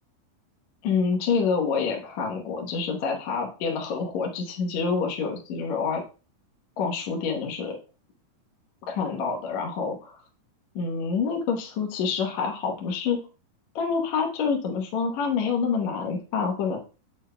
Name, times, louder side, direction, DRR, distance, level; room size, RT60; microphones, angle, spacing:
voice 1, 0.8-6.0 6.8-7.8 8.9-10.2 10.8-13.2 13.8-16.8, left 5 dB, 65° left, 0 dB, 2.1 m, -27 dB
8.0 x 6.9 x 2.2 m, 0.33 s
omnidirectional pair, 4.2 m